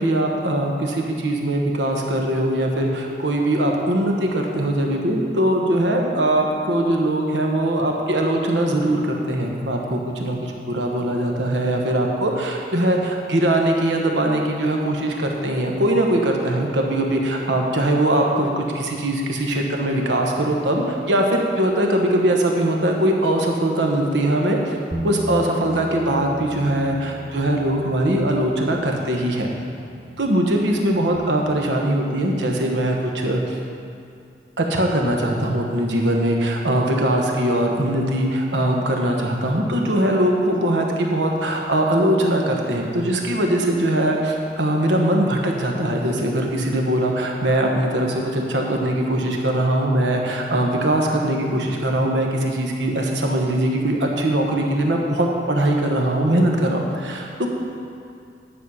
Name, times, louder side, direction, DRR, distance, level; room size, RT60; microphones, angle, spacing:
voice 1, 0.0-24.7 25.0-29.5 30.2-33.6 34.6-57.5, right 1 dB, 80° right, 1 dB, 1.2 m, -21 dB
Bass guitar, 24.9-31.2, equal, 10° right, 0.4 m, -35 dB
10.0 x 6.3 x 5.6 m, 2.4 s
head